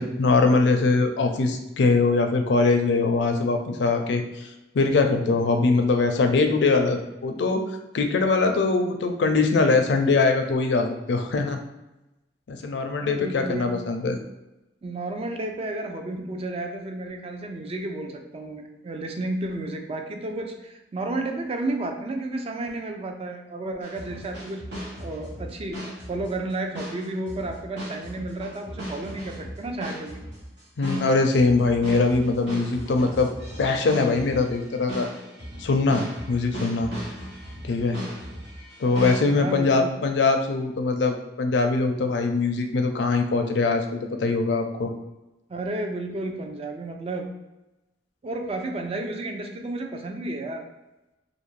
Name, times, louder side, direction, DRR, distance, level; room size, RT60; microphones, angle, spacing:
voice 1, 0.0-11.6 12.5-14.2 30.8-33.3 33.6-35.1 35.6-36.9 37.6-38.0 38.8-44.9, left 3 dB, 70° left, 5 dB, 0.4 m, -22 dB
voice 2, 13.0-13.8 14.8-24.7 25.0-30.2 39.3-39.9 45.5-47.3 48.2-50.6, right 2 dB, 35° right, 4 dB, 0.4 m, -32 dB
sound 1, 23.8-39.2, equal, 70° right, 1.0 m, -37 dB
2.5 x 2.5 x 3.1 m, 1.0 s
head